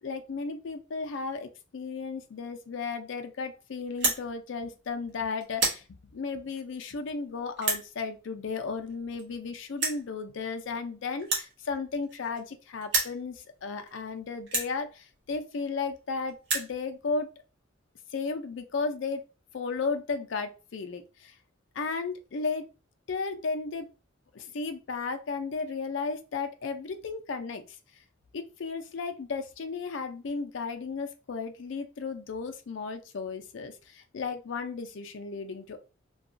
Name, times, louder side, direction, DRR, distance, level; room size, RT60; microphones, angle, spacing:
voice 1, 0.0-17.3 18.1-19.2 19.5-21.3 21.7-22.6 23.1-23.9 24.3-27.8 28.3-35.8, left 4 dB, 70° left, 6 dB, 0.4 m, -34 dB
sound 1, 3.9-4.2 4.9-5.1 5.4-5.8 6.6-6.7 7.6-7.8 8.9-9.0 9.2-9.3 9.8-10.0 11.2-12.5 12.8-13.2 13.9-14.0 14.5-14.7 15.6-15.7 15.9-16.0 16.3-16.7, right 3 dB, 65° right, 0.9 m, -29 dB
2.8 x 2.3 x 2.5 m, 0.32 s
head